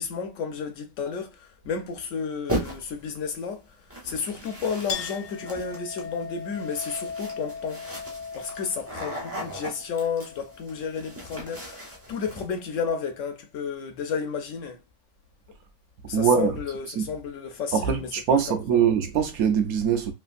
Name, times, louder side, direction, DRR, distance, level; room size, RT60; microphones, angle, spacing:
voice 1, 0.0-3.6 4.0-7.8 8.3-14.8 16.1-18.4 18.7-18.9, left 6 dB, 65° left, 0.8 m, -32 dB
sound 1, 2.5-3.0 3.9-12.5, right 1 dB, 10° right, 0.6 m, -37 dB
Chink clink, 4.9-11.9, left 6 dB, 85° left, 1.4 m, -39 dB
voice 2, 16.1-16.6 17.0-17.1 17.7-20.1, right 7 dB, 65° right, 1.0 m, -23 dB
3.3 x 2.7 x 2.5 m
omnidirectional pair, 1.8 m